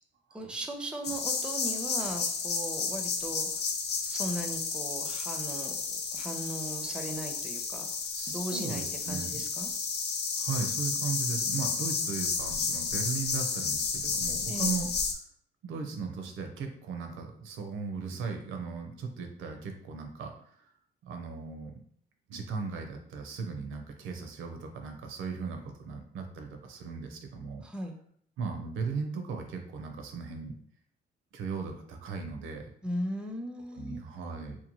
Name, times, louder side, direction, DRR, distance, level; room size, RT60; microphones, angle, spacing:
voice 1, 0.3-3.5 4.0-7.9 8.3-9.7 14.5-14.8 27.6-28.0 32.8-34.0, right 1 dB, 5° right, 3 dB, 0.4 m, -38 dB
sound 1, 1.0-15.1, left 5 dB, 55° left, 0.5 m, -32 dB
voice 2, 8.1-9.4 10.4-14.9 15.6-20.5 21.0-21.7 22.3-27.6 28.4-30.5 31.3-32.6 33.7-34.6, right 5 dB, 80° right, 4 dB, 0.6 m, -37 dB
2.7 x 2.1 x 2.9 m, 0.64 s
cardioid pair, 90°, 20 cm